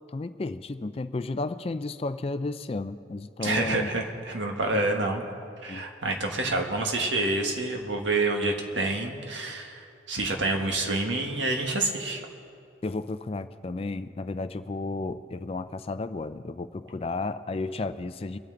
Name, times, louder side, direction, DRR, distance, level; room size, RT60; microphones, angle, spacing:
voice 1, 0.1-3.9 4.7-4.8 5.7-5.8 12.8-18.4, left 3 dB, 30° left, 12 dB, 0.4 m, -33 dB
voice 2, 3.4-5.2 5.6-12.2, right 2 dB, 75° right, 2 dB, 1.5 m, -28 dB
24.0 x 9.0 x 3.9 m, 2.4 s
head